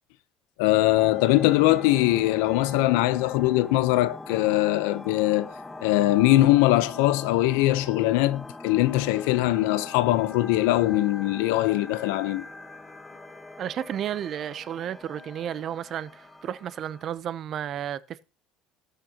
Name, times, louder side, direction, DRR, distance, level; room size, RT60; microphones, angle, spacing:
voice 1, 0.6-5.5 5.8-12.5, left 16 dB, 90° left, 0.8 m, -22 dB
sound 1, 0.9-17.2, left 2 dB, 10° left, 1.2 m, -42 dB
voice 2, 13.6-18.2, right 10 dB, 45° right, 0.7 m, -32 dB
19.5 x 6.6 x 2.9 m
cardioid pair, 120°, 0 cm